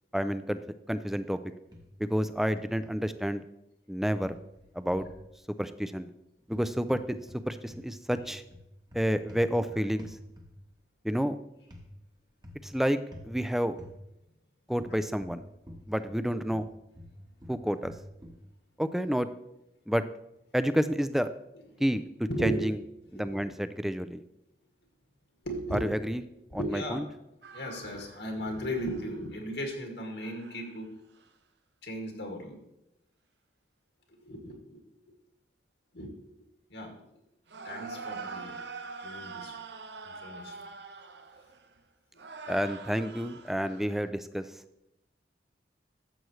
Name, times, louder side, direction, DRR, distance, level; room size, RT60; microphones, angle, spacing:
voice 1, 0.1-0.6 0.9-1.4 2.0-3.4 3.9-4.4 4.7-5.1 5.6-6.1 6.5-7.2 7.5-8.4 8.9-10.2 11.0-11.4 12.6-13.8 14.7-15.4 15.9-16.7 17.5-17.9 18.8-19.3 19.9-20.0 20.5-21.3 21.8-22.8 23.1-24.2 25.7-26.2 26.5-27.0 42.5-44.5, equal, ahead, 12 dB, 0.4 m, -29 dB
sound 1, 1.7-2.2 2.5-3.0 4.2-5.2 6.4-7.4 7.7-10.7 11.7-11.9 12.4-12.7 13.1-13.3 13.8-14.0 14.8-16.2 16.5-18.4, left 1 dB, 25° right, 1.3 m, -49 dB
voice 2, 22.3-22.6 23.1-23.4 25.4-25.9 26.5-27.1 27.5-30.9 31.8-32.6 34.1-34.8 35.9-36.4 36.7-36.9 37.6-38.6 39.0-39.6 40.0-40.6 42.1-42.3, equal, 80° left, 1 dB, 2.2 m, -36 dB
sound 2, 27.4-29.3 30.2-30.9 31.2-31.3 37.5-41.8 42.2-44.1, right 4 dB, 80° right, 0.8 m, -44 dB
12.5 x 7.8 x 3.2 m, 0.86 s
head